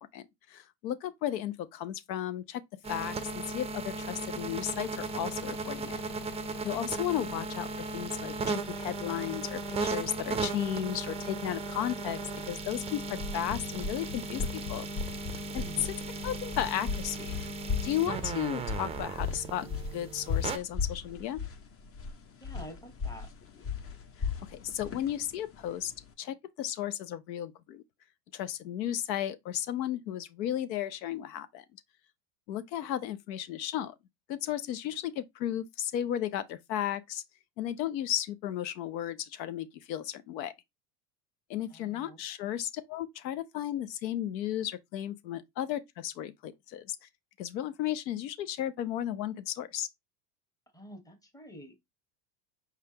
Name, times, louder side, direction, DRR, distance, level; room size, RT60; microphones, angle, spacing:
voice 1, 0.0-2.6 2.9-6.0 6.6-12.2 12.5-14.8 15.5-16.0 16.2-17.5 17.8-21.4 24.2-25.9 26.2-27.8 28.3-31.6 32.5-33.9 34.3-37.2 37.6-40.5 41.5-47.0 47.4-49.9, left 11 dB, 85° left, 0.7 m, -34 dB
sound 1, 2.8-20.6, right 3 dB, 15° right, 0.4 m, -36 dB
sound 2, 12.9-26.1, left 5 dB, 30° left, 0.6 m, -37 dB
voice 2, 15.6-15.9 22.4-23.3 41.7-42.5 50.7-51.7, equal, 5° left, 1.0 m, -48 dB
4.7 x 3.3 x 2.7 m
supercardioid pair, 100°, 50 cm